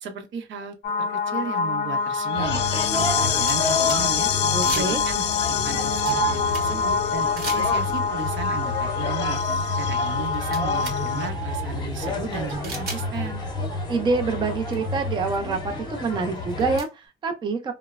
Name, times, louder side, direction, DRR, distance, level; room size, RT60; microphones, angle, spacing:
voice 1, 0.0-4.3 4.7-9.4 9.7-13.4, right 6 dB, 75° right, 0.7 m, -35 dB
sound 1, 0.8-11.3, left 6 dB, 60° left, 0.5 m, -25 dB
sound 2, 1.6-1.7 2.5-4.4 4.6-5.2 5.6-6.9 7.4-8.1 9.5-9.6 10.0-11.0 11.3-11.4 12.6-13.1 14.3-14.4 14.7-14.8 15.3-15.4 16.3-16.9, right 4 dB, 50° right, 0.9 m, -37 dB
sound 3, 2.3-16.8, left 1 dB, 20° left, 0.7 m, -30 dB
voice 2, 4.5-5.0 13.9-17.7, right 4 dB, 25° right, 0.4 m, -26 dB
3.0 x 2.0 x 2.3 m
cardioid pair, 160°, 20 cm